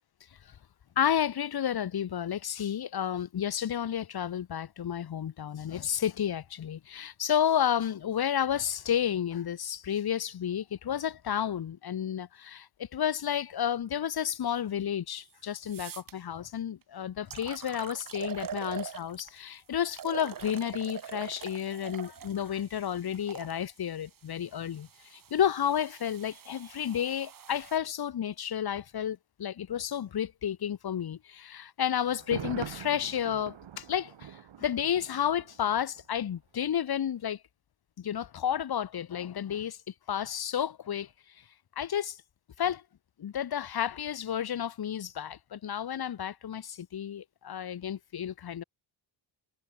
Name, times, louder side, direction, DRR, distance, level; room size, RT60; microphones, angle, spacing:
voice 1, 1.0-37.4 38.0-39.8 40.1-41.1 41.8-42.2 42.6-42.8 43.2-48.6, left 9 dB, 50° left, 2.0 m, -31 dB
sound 1, 15.1-15.2 15.6-16.1 16.8-16.9 17.3-19.4 19.9-23.5 24.4-27.8, right 8 dB, 45° right, 1.6 m, -43 dB
Thunder, 32.1-36.1 36.3-36.4, right 10 dB, 70° right, 6.9 m, -43 dB
wide cardioid pair, 160°, 46 cm